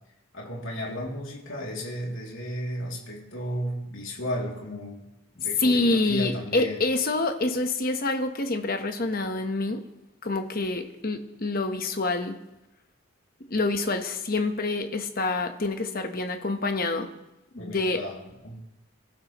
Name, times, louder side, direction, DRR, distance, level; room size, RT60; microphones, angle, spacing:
voice 1, 0.3-5.1 5.3-6.9 17.6-18.6, equal, 70° left, -2 dB, 2.8 m, -34 dB
voice 2, 5.6-9.8 10.2-12.4 13.5-17.1 17.5-18.0, left 2 dB, 45° left, 6 dB, 1.1 m, -27 dB
23.5 x 12.0 x 3.1 m, 0.91 s
head